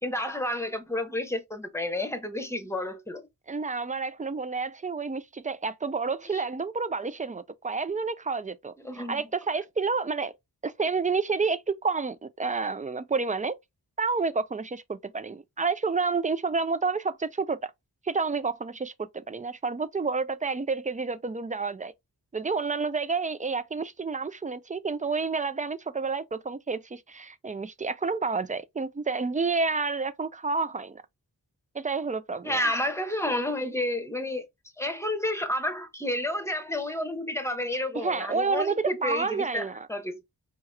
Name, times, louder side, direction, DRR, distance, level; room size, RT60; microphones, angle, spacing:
voice 1, 0.0-3.2 6.3-6.4 8.8-9.2 32.4-34.5 34.8-40.2, left 1 dB, 5° left, 0.9 m, -30 dB
voice 2, 3.5-10.3 10.6-13.6 14.0-17.7 18.0-21.9 22.3-31.0 31.7-32.6 37.9-39.9, right 4 dB, 20° right, 0.3 m, -29 dB
4.7 x 2.8 x 2.2 m
wide cardioid pair, 70°, 40 cm